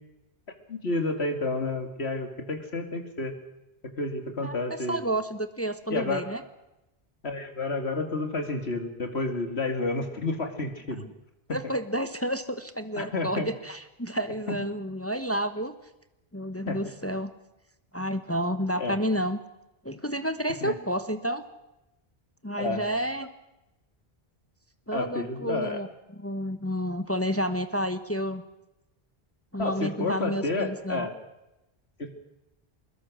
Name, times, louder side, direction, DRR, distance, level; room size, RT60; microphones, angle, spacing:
voice 1, 0.7-3.3 4.0-5.0 5.9-6.2 7.2-11.1 13.0-13.5 16.7-16.8 18.8-18.9 20.6-20.7 22.6-22.8 24.9-25.8 29.6-31.1 32.0-32.1, left 3 dB, 90° left, 6 dB, 2.8 m, -30 dB
voice 2, 4.4-6.4 11.5-15.7 16.3-17.3 17.9-19.4 19.8-21.4 22.4-23.3 24.9-25.9 26.2-28.4 29.5-31.1, equal, 15° left, 10 dB, 1.1 m, -30 dB
25.0 x 21.0 x 6.4 m, 0.94 s
omnidirectional pair, 1.0 m